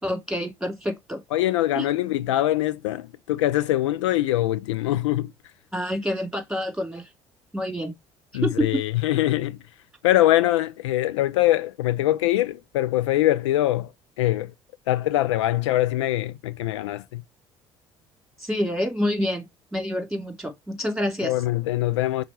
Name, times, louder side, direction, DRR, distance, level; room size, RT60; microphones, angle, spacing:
voice 1, 0.0-1.2 1.7-1.9 5.7-7.1 7.5-7.9 8.4-8.7 18.4-21.3, equal, ahead, 2.9 m, -27 dB
voice 2, 1.3-5.3 8.3-9.6 10.0-13.9 14.2-14.5 14.9-17.2 21.2-22.2, left 15 dB, 80° left, 0.4 m, -23 dB
5.7 x 4.0 x 4.2 m
hypercardioid pair, 55°, 15 cm